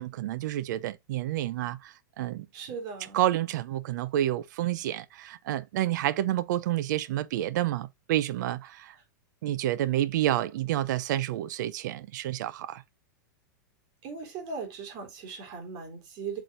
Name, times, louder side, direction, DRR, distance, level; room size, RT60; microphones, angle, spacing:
voice 1, 0.0-2.5 3.1-8.9 9.4-12.8, right 13 dB, 70° right, 0.8 m, -29 dB
voice 2, 2.5-3.2 14.0-16.4, right 5 dB, 45° right, 3.7 m, -38 dB
8.2 x 6.0 x 2.6 m
supercardioid pair, 145°, 10 cm